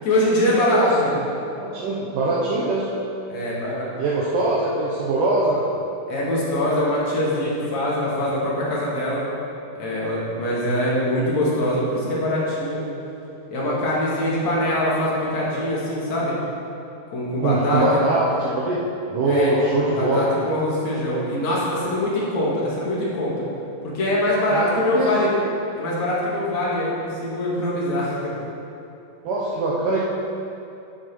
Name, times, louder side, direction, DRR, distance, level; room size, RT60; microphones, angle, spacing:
voice 1, 0.0-1.1 3.3-3.9 6.1-9.3 9.8-12.9 13.5-16.4 17.1-17.8 19.2-19.5 19.8-23.4 23.8-25.3 25.8-28.5, left 1 dB, 55° left, -6 dB, 3.3 m, -23 dB
voice 2, 0.7-1.2 1.6-2.9 4.0-5.6 17.4-18.3 18.5-18.8 19.1-20.2 24.5-25.1 29.2-30.0, right 2 dB, 75° right, -6 dB, 2.5 m, -22 dB
12.5 x 7.6 x 4.5 m, 2.7 s
omnidirectional pair, 3.9 m